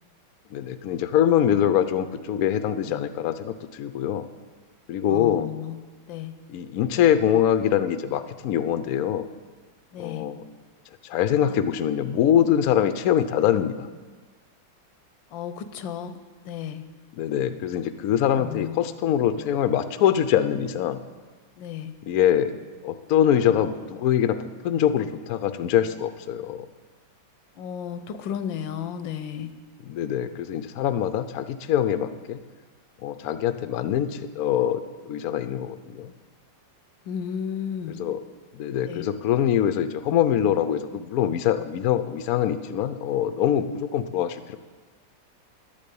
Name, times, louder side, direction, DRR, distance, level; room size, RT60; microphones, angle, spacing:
voice 1, 0.5-4.3 4.9-5.5 6.5-9.3 10.0-10.4 11.0-13.9 17.2-21.0 22.1-22.5 22.8-24.4 24.6-26.7 29.9-32.4 33.0-36.1 38.0-38.2 38.5-44.6, left 10 dB, 65° left, 11 dB, 1.0 m, -23 dB
voice 2, 5.1-6.4 9.9-10.3 15.3-16.9 18.4-18.8 21.6-22.0 27.6-29.6 37.0-38.0 38.9-39.1, left 8 dB, 85° left, 11 dB, 1.5 m, -34 dB
11.0 x 8.5 x 8.5 m, 1.3 s
omnidirectional pair, 2.0 m